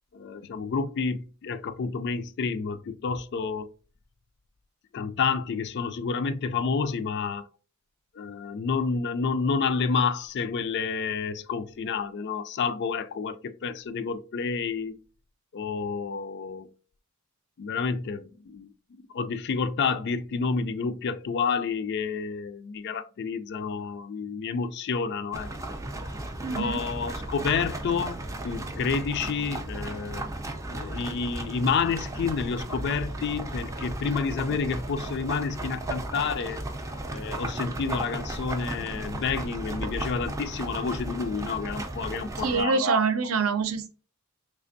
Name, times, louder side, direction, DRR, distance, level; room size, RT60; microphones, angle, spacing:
voice 1, 0.1-3.7 4.9-7.5 8.2-15.0 15.5-16.7 17.6-18.7 19.1-25.5 26.6-30.2 30.7-36.6 37.1-43.0, left 5 dB, 50° left, 0.3 m, -29 dB
sound 1, 25.3-42.6, right 1 dB, 15° right, 0.4 m, -35 dB
voice 2, 26.4-26.8 42.4-43.9, right 4 dB, 70° right, 0.6 m, -25 dB
3.3 x 3.3 x 2.5 m
head